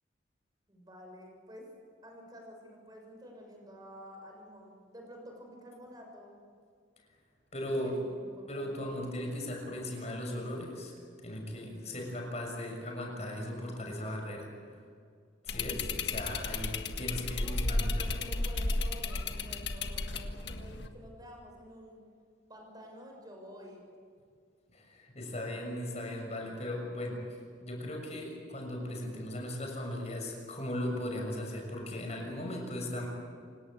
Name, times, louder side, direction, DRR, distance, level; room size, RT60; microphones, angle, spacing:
voice 1, 0.7-1.6 2.0-6.4 7.8-8.9 14.7-14.8 17.0-22.0 22.5-23.9, equal, 20° right, 1 dB, 6.5 m, -50 dB
voice 2, 7.5-7.9 8.5-10.9 11.2-14.5 15.4-18.2 24.7-27.2 27.6-33.1, left 1 dB, 35° left, 1 dB, 6.7 m, -37 dB
sound 1, 15.5-20.9, left 3 dB, 60° left, 1.7 m, -33 dB
28.5 x 18.0 x 8.1 m, 2.2 s
head